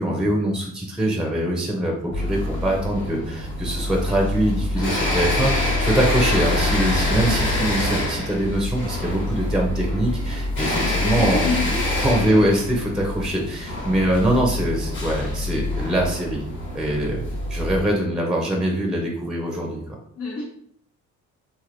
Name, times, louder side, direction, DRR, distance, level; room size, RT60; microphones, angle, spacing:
voice 1, 0.0-11.5 12.0-16.4 16.7-17.2 17.5-19.8, right 1 dB, ahead, -1 dB, 0.7 m, -23 dB
sound 1, 2.1-17.8, left 1 dB, 40° left, 1.3 m, -25 dB
voice 2, 11.0-11.8 12.2-12.4 18.1-18.3 20.2-20.4, left 3 dB, 70° left, -5 dB, 1.0 m, -29 dB
3.1 x 2.7 x 2.6 m, 0.67 s
cardioid pair, 90°, 30 cm